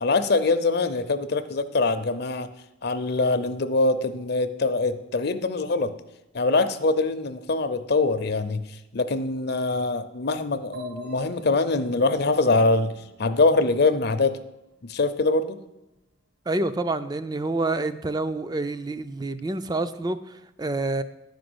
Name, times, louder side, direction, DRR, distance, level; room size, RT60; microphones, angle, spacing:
voice 1, 0.0-2.5 2.8-5.9 6.3-8.7 8.9-12.9 13.2-14.4 14.9-15.6, left 3 dB, 55° left, 10 dB, 0.6 m, -23 dB
sound 1, 10.7-14.4, equal, 65° right, 2.8 m, -44 dB
voice 2, 16.5-21.0, right 2 dB, 20° right, 12 dB, 0.4 m, -28 dB
10.5 x 5.2 x 7.8 m, 0.91 s
head